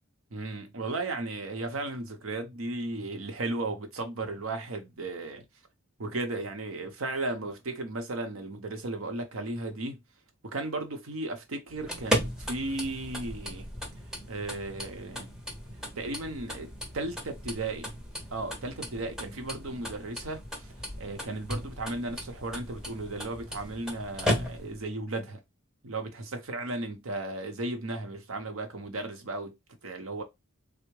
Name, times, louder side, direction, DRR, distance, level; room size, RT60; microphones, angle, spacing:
voice 1, 0.3-5.4 6.0-10.0 10.4-13.7 14.3-15.3 16.0-18.0 18.3-20.7 21.0-25.4 25.8-29.6 29.8-30.2, right 2 dB, 80° right, 0.8 m, -35 dB
sound 1, 11.7-24.9, equal, 5° right, 0.5 m, -36 dB
3.4 x 2.0 x 3.1 m
head